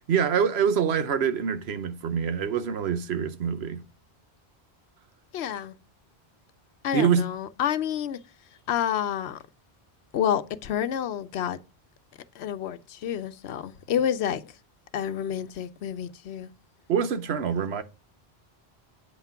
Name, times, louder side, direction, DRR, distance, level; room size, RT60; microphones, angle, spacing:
voice 1, 0.1-3.8 6.9-7.2 16.9-17.8, right 7 dB, 80° right, 1.1 m, -25 dB
voice 2, 5.3-5.7 6.8-8.2 8.7-9.4 10.1-11.6 12.3-14.5 14.9-16.5, left 9 dB, 85° left, 0.9 m, -29 dB
8.5 x 5.8 x 5.7 m
omnidirectional pair, 1.0 m